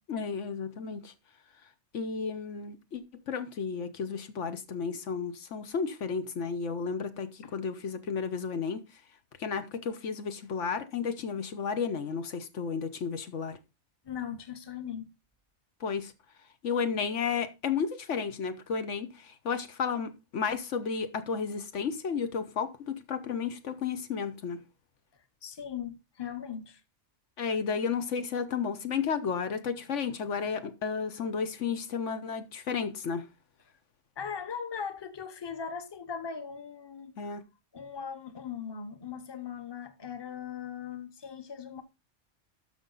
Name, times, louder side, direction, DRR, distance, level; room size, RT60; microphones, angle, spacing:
voice 1, 0.1-1.1 1.9-8.8 9.4-13.6 15.8-16.1 16.6-24.6 27.4-33.3 37.2-37.4, left 6 dB, 85° left, 1.3 m, -33 dB
voice 2, 14.0-15.0 25.4-26.8 34.2-37.3 37.7-41.8, left 7 dB, 25° left, 0.9 m, -39 dB
12.5 x 5.6 x 3.9 m
omnidirectional pair, 1.2 m